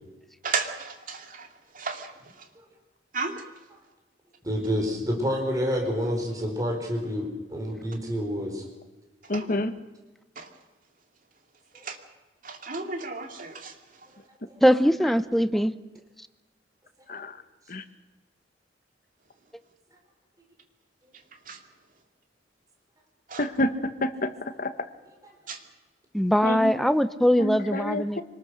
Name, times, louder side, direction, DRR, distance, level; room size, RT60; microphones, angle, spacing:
voice 1, 0.4-1.5 1.7-2.1 3.1-3.4 9.3-9.5 10.4-10.5 11.8-12.0 12.4-13.7 21.5-21.6 23.3-23.4 25.5-25.6, right 4 dB, 50° right, 4 dB, 2.5 m, -33 dB
voice 2, 4.4-8.6 11.7-11.8 14.5-14.6 15.3-15.4 25.2-25.3, equal, 20° right, 1 dB, 4.7 m, -28 dB
voice 3, 9.3-9.7 17.1-17.4 17.7-17.8 23.4-24.7 26.4-26.7 27.4-28.2, left 1 dB, 50° left, 10 dB, 1.4 m, -28 dB
voice 4, 14.6-15.7 26.1-28.2, equal, ahead, 12 dB, 0.6 m, -21 dB
25.5 x 19.5 x 6.5 m, 1.1 s
head